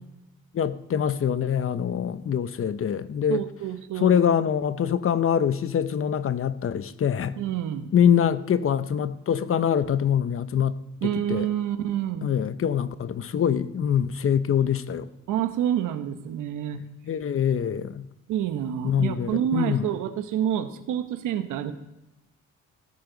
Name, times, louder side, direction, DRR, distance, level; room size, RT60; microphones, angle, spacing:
voice 1, 0.5-3.4 4.0-7.3 7.9-10.8 11.0-11.5 12.2-15.1 17.0-18.1 18.8-19.8, left 8 dB, 45° left, 13 dB, 0.8 m, -24 dB
voice 2, 3.3-4.1 7.4-7.9 11.0-12.3 15.3-16.8 18.3-21.7, right 10 dB, 90° right, 9 dB, 1.2 m, -28 dB
16.0 x 14.0 x 4.0 m, 0.95 s
cardioid pair, 90°, 30 cm